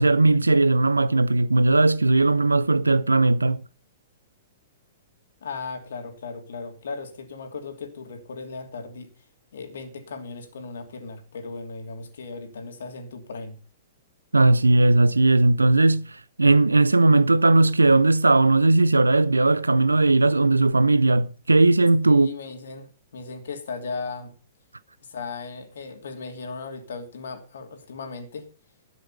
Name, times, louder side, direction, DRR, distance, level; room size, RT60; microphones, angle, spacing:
voice 1, 0.0-3.6 14.3-22.3, right 2 dB, 80° right, 0.6 m, -18 dB
voice 2, 5.4-9.3 9.5-13.6 22.0-24.3 25.0-28.5, left 4 dB, 60° left, 2.9 m, -37 dB
13.0 x 9.5 x 5.6 m
figure-of-eight pair, 110°, 0 cm